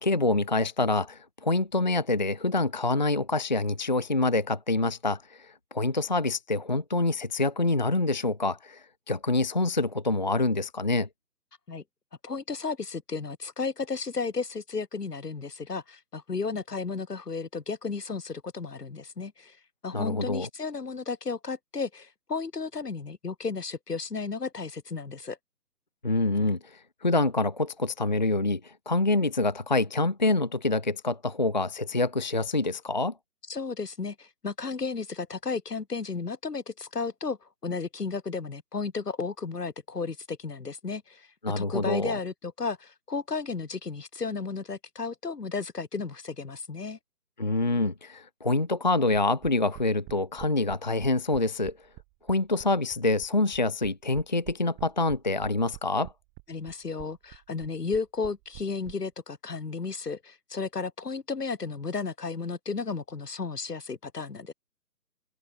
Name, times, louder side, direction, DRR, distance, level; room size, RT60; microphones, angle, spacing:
voice 1, 0.0-11.1 19.9-20.5 26.0-33.1 41.4-42.2 47.4-51.7 52.3-56.1, left 2 dB, 30° left, 0.8 m, -26 dB
voice 2, 12.2-19.6 19.8-25.4 33.5-37.4 37.6-41.3 41.6-47.0 56.5-64.5, left 4 dB, 75° left, 5.9 m, -33 dB
sound 1, 49.4-58.9, right 35 dB, 10° right, 4.3 m, -45 dB
open air
hypercardioid pair, 175°, 47 cm